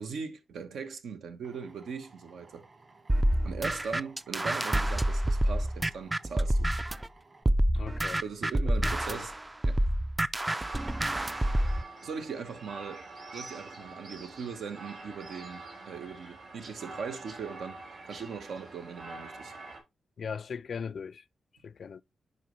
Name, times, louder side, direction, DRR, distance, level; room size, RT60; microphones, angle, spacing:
voice 1, 0.0-2.6 3.4-6.7 8.2-9.3 9.6-9.8 12.0-13.1 13.3-19.5, right 5 dB, 85° right, 1.1 m, -40 dB
Drill, 1.4-7.4, right 3 dB, 40° right, 1.9 m, -58 dB
sound 1, 3.1-7.1 7.5-11.8, right 1 dB, 20° right, 0.3 m, -27 dB
voice 2, 7.7-8.2 8.8-9.2 20.2-21.2 21.6-22.0, left 6 dB, 60° left, 0.3 m, -39 dB
sound 2, 10.5-19.8, right 3 dB, 70° right, 3.5 m, -46 dB
10.5 x 4.2 x 3.2 m
cardioid pair, 85°, 0 cm